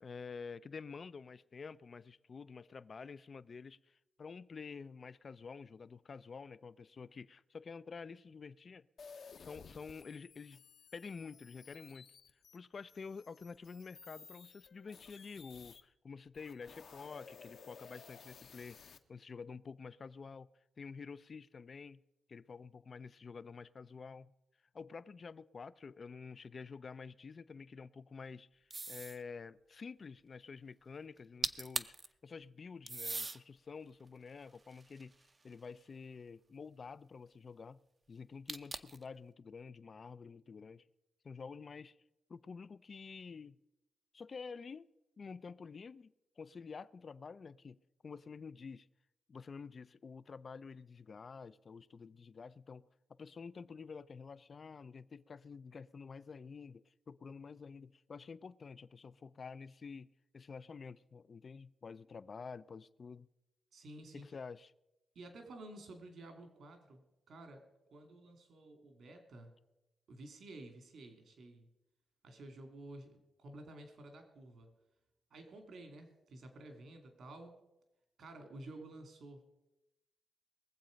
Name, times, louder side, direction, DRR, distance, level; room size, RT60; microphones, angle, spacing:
voice 1, 0.0-8.9 9.3-10.6 10.9-12.1 12.5-18.8 19.1-20.5 20.8-22.0 22.3-24.3 24.7-31.9 32.2-35.1 35.4-37.8 38.1-40.9 41.2-42.0 42.3-43.6 44.1-44.9 45.2-46.1 46.4-47.8 48.0-48.9 49.3-52.9 53.2-60.1 60.3-63.3 64.1-64.7, left 5 dB, 45° left, 0.4 m, -49 dB
sound 1, 9.0-15.8 16.3-19.0, left 6 dB, 65° left, 1.0 m, -56 dB
sound 2, 28.7-29.2 31.2-31.3 31.4-32.1 32.9-33.4 34.1-35.5 38.5-39.0, right 3 dB, 30° right, 0.7 m, -40 dB
voice 2, 63.7-64.3 65.1-69.6 70.1-71.7 72.2-74.7 75.3-77.5 78.2-79.4, right 2 dB, 70° right, 2.6 m, -52 dB
21.5 x 7.7 x 5.2 m
cardioid pair, 105°, 0 cm